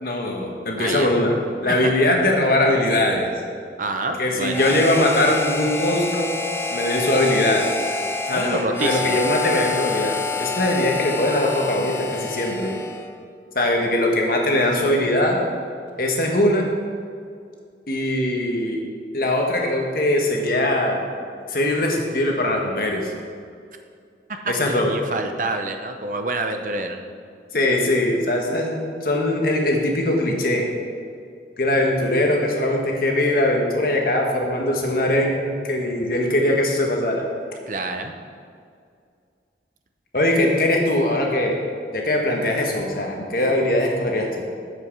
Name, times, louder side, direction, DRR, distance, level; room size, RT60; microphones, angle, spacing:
voice 1, 0.0-3.3 4.2-6.3 6.7-7.7 8.3-12.7 13.5-15.4 16.0-16.7 17.9-18.8 19.1-21.0 21.5-23.1 24.5-24.9 27.5-30.7 31.6-37.2 40.1-41.6 41.9-44.3, left 1 dB, 55° left, 0 dB, 1.3 m, -21 dB
voice 2, 0.8-1.1 1.8-1.9 3.8-4.7 8.3-9.2 24.6-27.0 37.7-38.1, right 2 dB, 45° right, 5 dB, 0.7 m, -27 dB
Harmonica, 4.5-13.1, left 3 dB, 15° left, 0.4 m, -28 dB
7.5 x 6.9 x 6.0 m, 2.2 s
head